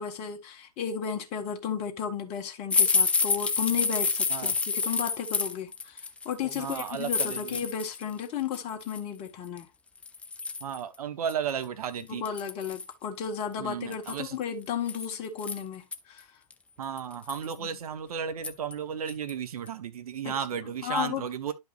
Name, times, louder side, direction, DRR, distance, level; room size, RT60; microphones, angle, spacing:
voice 1, 0.0-9.7 12.1-16.3 17.6-17.8 20.2-20.3 20.8-21.3, left 7 dB, 30° left, 1.8 m, -34 dB
sound 1, 2.7-8.1 8.4-9.0 9.6-9.7 10.0-10.8 11.3-11.4 11.6-11.7 12.2-12.9 13.9-16.0 16.5-16.6 17.0-17.5 18.4-18.7 19.1-19.3 19.7-19.8, left 4 dB, 5° left, 0.4 m, -29 dB
voice 2, 6.6-7.6 10.6-12.2 13.6-14.4 16.8-21.5, right 7 dB, 60° right, 1.4 m, -34 dB
11.5 x 5.4 x 2.5 m
hypercardioid pair, 130°, 21 cm